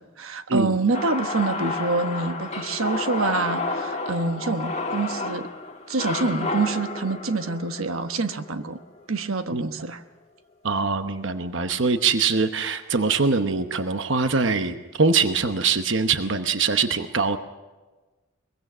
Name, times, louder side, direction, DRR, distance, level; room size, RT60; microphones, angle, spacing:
voice 1, 0.0-5.5 5.9-8.8 9.1-10.0, right 3 dB, 85° right, 9 dB, 1.1 m, -26 dB
sound 1, 0.9-9.1, left 3 dB, 30° left, 1.5 m, -31 dB
voice 2, 10.6-17.4, right 4 dB, 60° right, 9 dB, 1.0 m, -23 dB
23.0 x 22.5 x 6.2 m, 1.2 s
head